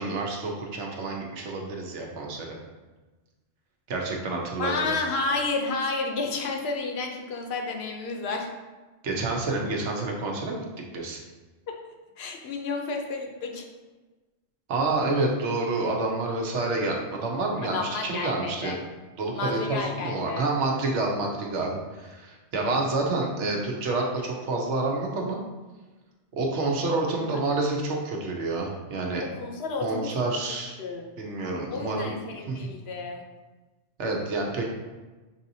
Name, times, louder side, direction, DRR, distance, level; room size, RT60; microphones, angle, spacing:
voice 1, 0.0-2.6 3.9-4.9 9.0-10.6 10.9-11.2 14.7-18.8 19.2-25.4 26.3-29.2 29.8-30.8 31.2-32.1 32.5-32.7 34.0-34.7, right 2 dB, 90° right, 0 dB, 1.1 m, -28 dB
voice 2, 4.6-8.5 11.7-11.8 12.2-13.6 17.6-18.8 19.3-20.5 27.1-27.2 29.2-30.1 30.8-31.1 31.7-33.2, left 3 dB, 70° left, 3 dB, 0.8 m, -31 dB
5.5 x 2.8 x 2.6 m, 1.2 s
omnidirectional pair, 1.1 m